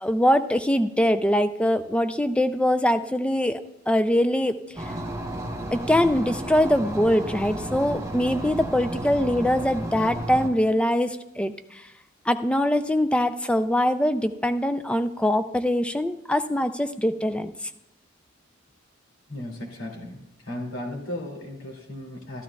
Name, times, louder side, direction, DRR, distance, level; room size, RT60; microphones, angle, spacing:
voice 1, 0.0-3.6 3.9-4.9 5.7-11.9 12.3-17.5, left 1 dB, 5° left, 10 dB, 0.4 m, -23 dB
sound 1, 4.8-10.5, right 1 dB, 15° right, 1.1 m, -33 dB
voice 2, 19.3-20.2 20.4-22.4, left 1 dB, 90° left, -1 dB, 2.6 m, -35 dB
13.5 x 12.5 x 2.3 m, 0.85 s
head